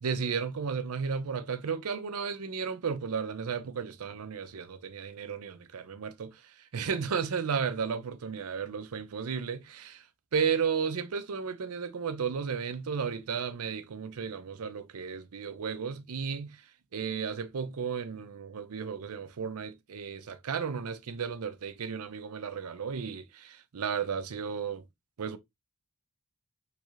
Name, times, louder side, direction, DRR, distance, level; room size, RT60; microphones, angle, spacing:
voice 1, 0.0-10.1 10.3-16.6 16.9-24.8 25.2-25.4, right 6 dB, 90° right, 0.5 m, -34 dB
3.2 x 2.4 x 3.0 m
head